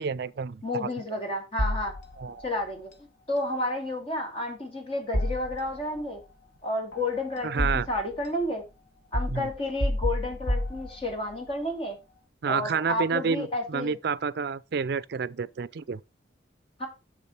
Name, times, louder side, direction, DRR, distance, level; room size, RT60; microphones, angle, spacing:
voice 1, 0.0-0.9 2.2-2.4 7.4-7.9 9.3-9.5 12.4-16.0, right 5 dB, 55° right, 0.4 m, -29 dB
voice 2, 0.6-1.9 2.4-2.9 3.3-6.2 6.6-8.6 9.1-12.0 12.5-14.0 16.8-16.9, left 1 dB, 30° left, 2.2 m, -31 dB
sound 1, 1.6-2.5 5.1-6.0 6.9-8.2 9.1-11.4, left 1 dB, 60° left, 1.3 m, -30 dB
6.8 x 6.6 x 4.3 m
head